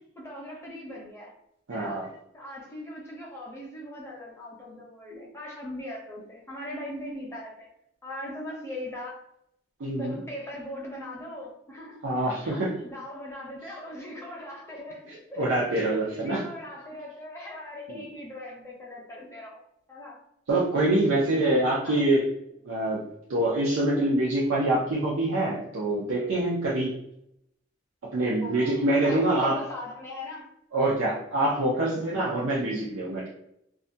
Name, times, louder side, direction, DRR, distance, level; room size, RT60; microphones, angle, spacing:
voice 1, 0.0-1.3 1.7-2.1 2.3-7.7 8.0-9.2 10.0-19.6 19.9-20.2 21.4-22.0 28.4-31.1 31.7-32.1, left 1 dB, 15° left, -3 dB, 0.5 m, -40 dB
voice 2, 1.7-2.1 9.8-10.2 12.0-12.7 15.4-16.4 17.9-18.0 20.5-22.2 22.6-23.0 23.3-27.0 28.1-29.6 30.7-33.3, right 1 dB, 90° right, -6 dB, 0.5 m, -25 dB
2.4 x 2.1 x 2.6 m, 0.77 s
head